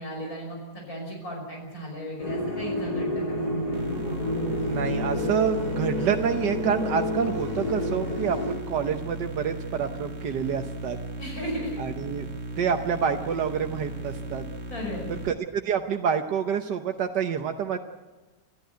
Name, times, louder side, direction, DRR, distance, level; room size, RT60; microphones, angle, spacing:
voice 1, 0.0-3.5 11.2-11.8 14.7-15.1, equal, 55° left, 0 dB, 6.1 m, -35 dB
sound 1, 2.2-8.5, left 1 dB, 30° left, 8.3 m, -29 dB
sound 2, 3.7-15.3, right 1 dB, 40° right, 2.0 m, -37 dB
voice 2, 4.6-11.0 11.8-12.3 12.6-14.4 15.1-17.8, right 7 dB, 85° right, 4 dB, 1.6 m, -28 dB
27.0 x 14.5 x 9.4 m, 1.2 s
omnidirectional pair, 1.8 m